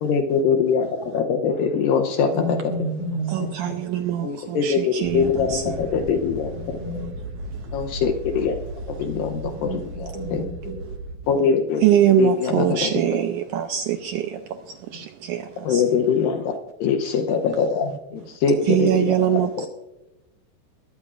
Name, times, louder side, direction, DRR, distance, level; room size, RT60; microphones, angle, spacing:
voice 1, 0.0-0.9 1.1-2.6 4.2-6.8 7.7-8.6 8.9-9.4 10.0-10.4 11.3-11.8 12.2-12.9 15.7-16.6 16.8-19.2 19.6-19.7, left 6 dB, 75° left, 4 dB, 2.4 m, -22 dB
voice 2, 2.3-3.5 6.5-7.1 9.4-9.8 10.1-10.7 11.5-11.6 17.8-17.9, equal, 25° left, 0 dB, 4.4 m, -30 dB
voice 3, 3.3-5.7 11.8-14.2 14.9-15.4 15.7-15.8 18.6-19.7, right 11 dB, 85° right, 6 dB, 1.8 m, -22 dB
sound 1, 5.0-11.2, right 2 dB, 55° right, 2.5 m, -35 dB
21.0 x 13.5 x 2.5 m, 0.97 s
omnidirectional pair, 4.3 m